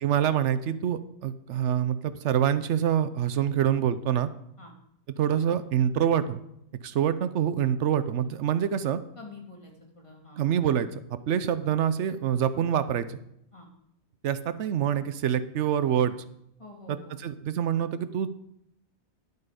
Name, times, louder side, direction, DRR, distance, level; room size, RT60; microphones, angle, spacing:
voice 1, 0.0-4.3 5.2-6.4 6.8-9.0 10.4-13.2 14.2-16.1 16.9-18.3, right 9 dB, 85° right, 13 dB, 1.0 m, -26 dB
voice 2, 9.2-10.4 13.5-13.7 16.6-17.2, left 2 dB, 25° left, -1 dB, 2.4 m, -47 dB
11.0 x 8.1 x 5.1 m, 0.77 s
omnidirectional pair, 1.2 m